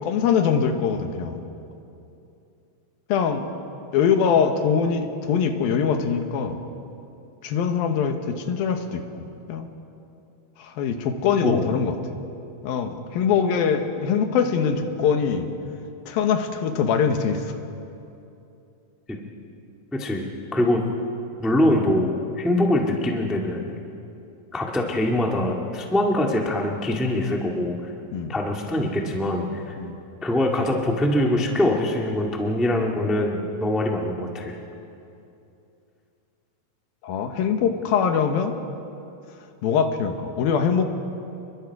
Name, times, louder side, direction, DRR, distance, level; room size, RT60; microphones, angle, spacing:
voice 1, 0.0-1.4 3.1-3.5 3.9-6.6 7.4-9.0 9.5-9.7 10.6-11.9 12.6-15.5 16.1-17.5 28.1-28.3 29.8-29.9 37.0-38.5 39.6-40.8, left 6 dB, 75° left, 6 dB, 3.0 m, -23 dB
voice 2, 21.4-23.6 24.5-27.7 28.3-29.7 30.2-34.5, left 1 dB, ahead, 0 dB, 0.5 m, -23 dB
29.5 x 22.5 x 4.8 m, 2.7 s
omnidirectional pair, 4.3 m